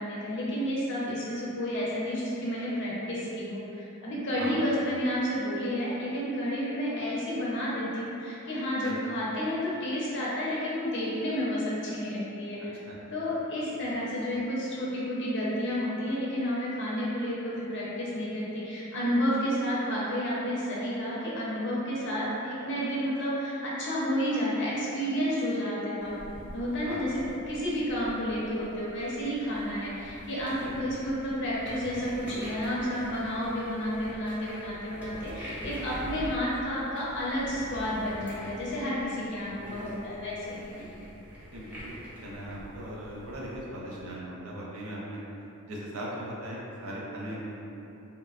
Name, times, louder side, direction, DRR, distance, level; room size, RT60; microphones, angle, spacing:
voice 1, 0.0-12.7 13.1-26.2 26.5-40.7, equal, 55° left, -7 dB, 0.6 m, -31 dB
sound 1, 26.0-43.6, equal, 5° right, 0.4 m, -45 dB
voice 2, 41.5-41.9 42.2-45.2 45.7-47.6, right 1 dB, 70° right, -5 dB, 0.5 m, -39 dB
2.8 x 2.2 x 2.3 m, 2.9 s
head